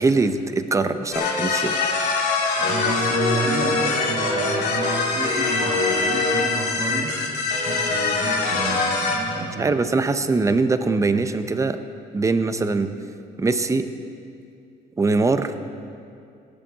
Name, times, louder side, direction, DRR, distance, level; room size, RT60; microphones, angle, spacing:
voice 1, 0.0-1.8 9.6-11.8 12.1-12.9 13.4-13.9 15.0-15.5, right 3 dB, 20° right, 10 dB, 0.7 m, -22 dB
sound 1, 1.1-9.1, left 3 dB, 75° left, 2.5 m, -23 dB
voice 2, 2.6-7.2 7.6-9.8, right 3 dB, 55° right, 0 dB, 2.4 m, -30 dB
18.5 x 10.0 x 4.1 m, 2.4 s
cardioid pair, 110°, 17 cm